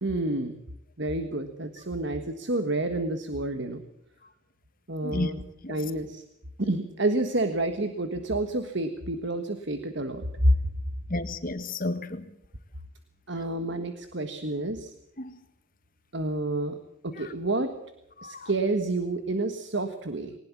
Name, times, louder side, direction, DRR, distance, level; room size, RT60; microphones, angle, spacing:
voice 1, 0.0-0.6 1.0-3.8 4.9-5.4 5.7-6.2 6.6-10.5 13.3-14.9 16.1-16.8 17.0-17.7 18.2-20.4, right 1 dB, 55° right, 1.5 m, -29 dB
voice 2, 11.1-12.2 15.2-15.3 18.2-18.5, left 2 dB, 40° left, 1.7 m, -32 dB
21.0 x 19.5 x 7.3 m
head